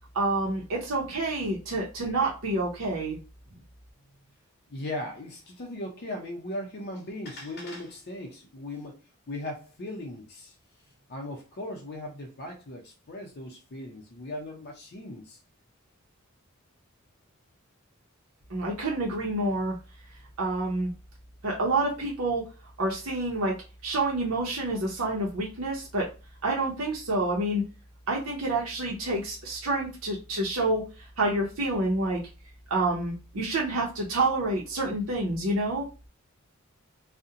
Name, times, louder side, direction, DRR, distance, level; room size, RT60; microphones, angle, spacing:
voice 1, 0.1-3.2 18.5-19.8 20.4-20.9 21.4-22.5 22.8-23.6 23.8-26.1 26.4-27.6 28.1-32.2 32.7-35.9, right 2 dB, 75° right, -2 dB, 0.7 m, -28 dB
voice 2, 4.7-9.0 9.3-10.5 11.1-15.4, left 1 dB, 50° left, 1 dB, 0.5 m, -38 dB
2.4 x 2.1 x 2.7 m, 0.30 s
head